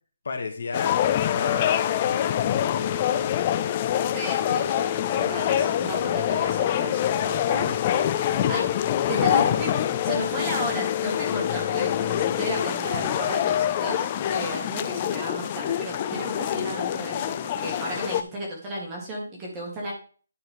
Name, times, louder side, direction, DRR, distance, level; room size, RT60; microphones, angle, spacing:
voice 1, 0.2-3.7, left 4 dB, 50° left, 5 dB, 1.8 m, -34 dB
sound 1, 0.7-18.2, left 11 dB, 20° left, 0.4 m, -25 dB
voice 2, 4.1-8.7 9.1-19.9, right 1 dB, 10° right, -2 dB, 1.9 m, -34 dB
10.5 x 5.6 x 3.6 m, 0.39 s
hypercardioid pair, 180°, 0 cm